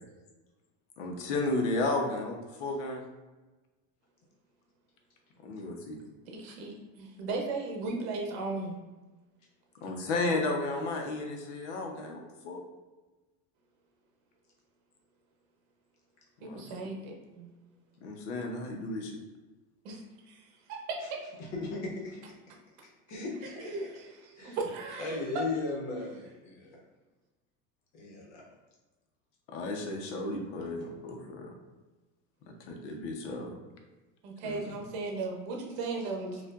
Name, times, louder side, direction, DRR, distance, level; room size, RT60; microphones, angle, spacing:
voice 1, 1.0-3.0 5.4-6.0 9.8-12.6 16.4-16.6 18.0-19.2 29.5-31.5 32.7-33.5 34.4-34.7, left 2 dB, 85° left, 2 dB, 0.8 m, -33 dB
voice 2, 6.3-8.8 16.4-17.5 19.8-20.0 20.3-21.2 23.6-25.2 34.2-36.4, right 3 dB, 60° right, 1 dB, 0.9 m, -36 dB
voice 3, 21.4-22.2 23.1-23.8 24.4-24.6 25.0-26.8 27.9-28.4, left 3 dB, 45° left, -3 dB, 1.1 m, -36 dB
4.5 x 2.5 x 2.5 m, 1.2 s
supercardioid pair, 155°, 35 cm